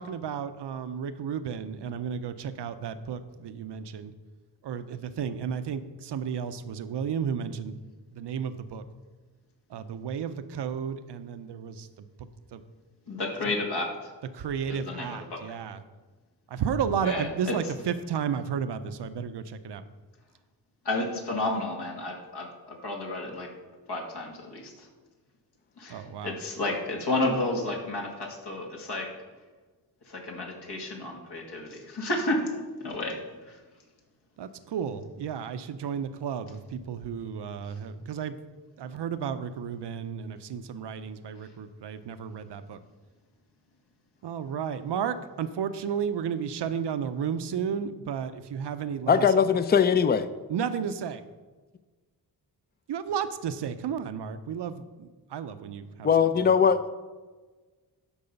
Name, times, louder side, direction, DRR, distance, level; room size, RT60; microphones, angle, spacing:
voice 1, 0.0-4.1 4.6-7.8 8.1-8.8 9.7-11.9 12.5-12.6 13.4-13.5 14.3-15.8 16.5-19.8 25.9-26.3 34.4-38.3 38.8-42.8 44.2-49.3 50.5-51.2 52.9-56.1, right 7 dB, 75° right, 11 dB, 0.7 m, -33 dB
voice 2, 13.1-14.1 14.7-15.4 17.0-17.6 20.8-23.5 23.9-24.9 25.8-29.1 30.1-32.5 32.8-33.2 33.5-33.6, left 2 dB, 70° left, 0 dB, 2.2 m, -31 dB
voice 3, 49.1-50.3 56.0-56.8, left 7 dB, 25° left, 12 dB, 0.5 m, -20 dB
12.5 x 4.8 x 5.3 m, 1.3 s
cardioid pair, 80°, 41 cm